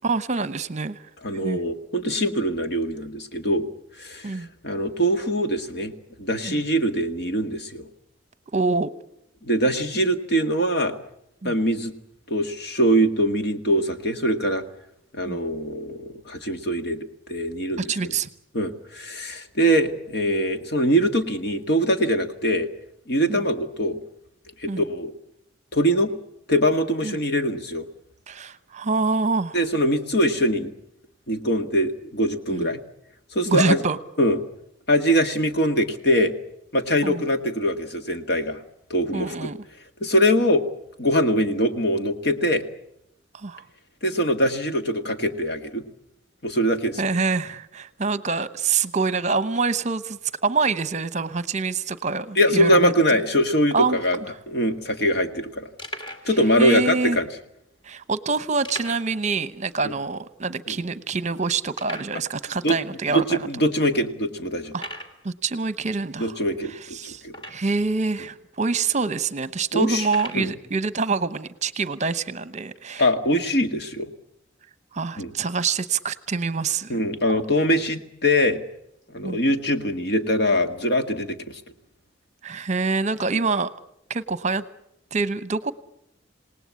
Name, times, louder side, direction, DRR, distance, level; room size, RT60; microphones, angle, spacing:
voice 1, 0.0-1.0 1.4-1.6 4.2-4.5 6.4-6.6 8.5-8.9 11.4-11.6 15.3-15.4 17.8-18.3 23.3-23.4 24.7-24.8 27.0-27.2 28.3-29.6 32.5-32.7 33.5-34.0 37.0-37.2 39.1-39.6 43.3-43.6 47.0-53.2 53.7-54.0 56.6-57.2 57.8-63.5 64.7-64.9 65.2-66.4 66.6-73.1 74.9-77.0 79.2-79.4 82.4-83.7 84.1-84.6 85.1-85.7, right 4 dB, 35° right, 14 dB, 0.9 m, -26 dB
voice 2, 1.2-3.7 4.0-5.9 6.2-7.9 9.4-10.9 11.4-11.9 12.3-14.6 15.1-17.0 17.3-17.9 18.5-22.7 23.1-24.0 24.6-25.1 25.7-26.1 26.5-27.9 29.5-30.7 31.3-32.8 33.3-33.8 34.2-34.4 34.9-36.3 36.7-38.6 38.9-39.5 40.0-40.6 41.0-42.6 44.0-45.8 46.4-47.1 52.4-54.2 54.5-55.7 56.2-57.3 59.8-59.9 60.7-60.8 62.6-62.8 63.1-64.8 66.2-67.4 69.7-70.1 70.3-70.5 73.0-74.1 75.2-75.3 76.9-78.6 79.1-81.6, equal, 55° left, 7 dB, 1.9 m, -22 dB
sound 1, 54.7-54.8 55.3-55.4 55.8-56.3 57.1-57.2 58.6-59.2 59.5-59.6 60.1-60.2 60.7-60.8 61.8-62.2 63.0-63.1 63.7-63.8 64.7-65.2 67.3-67.8 68.6-68.7 70.0-70.5, equal, 25° left, 2.7 m, -37 dB
28.0 x 18.5 x 8.4 m, 0.79 s
head